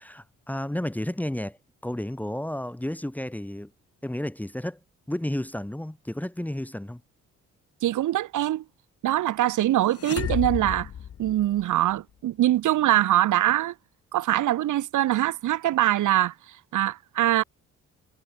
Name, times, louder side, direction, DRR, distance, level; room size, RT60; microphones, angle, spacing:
voice 1, 0.0-1.6 1.8-3.7 4.0-4.8 5.1-7.0, left 1 dB, 5° left, 1.6 m, -32 dB
voice 2, 7.8-8.6 9.0-10.9 11.2-13.7 14.1-16.3 16.7-17.4, right 13 dB, 80° right, 2.8 m, -23 dB
sound 1, 9.9-11.9, left 9 dB, 50° left, 1.5 m, -32 dB
cardioid pair, 90°, 30 cm